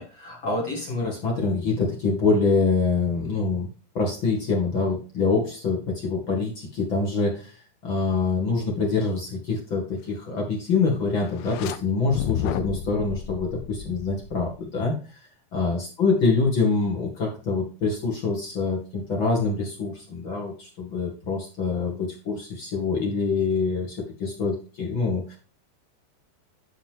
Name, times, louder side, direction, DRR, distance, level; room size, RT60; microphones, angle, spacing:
voice 1, 0.0-3.7 3.9-7.6 7.8-15.2 15.5-25.4, left 4 dB, 45° left, -1 dB, 1.7 m, -25 dB
sound 1, 11.3-11.8 12.1-14.7, left 10 dB, 90° left, 2.9 m, -32 dB
9.3 x 6.4 x 3.5 m, 0.36 s
omnidirectional pair, 4.9 m